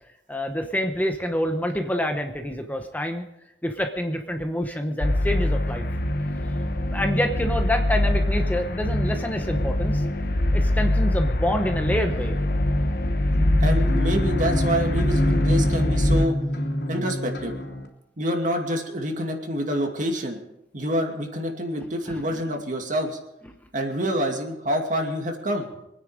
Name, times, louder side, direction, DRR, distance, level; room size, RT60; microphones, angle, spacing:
voice 1, 0.3-3.2 3.6-5.9 6.9-10.0 10.5-12.4 22.1-22.4, equal, 10° left, 5 dB, 0.9 m, -27 dB
sound 1, 5.0-16.3, left 1 dB, 55° left, 1.1 m, -23 dB
sound 2, 13.3-17.9, left 1 dB, 70° left, 3.2 m, -27 dB
voice 2, 13.6-16.3 16.9-17.6 18.2-20.4 20.7-23.2 23.7-25.7, equal, 45° right, 3 dB, 2.5 m, -27 dB
24.5 x 9.7 x 5.1 m, 0.85 s
head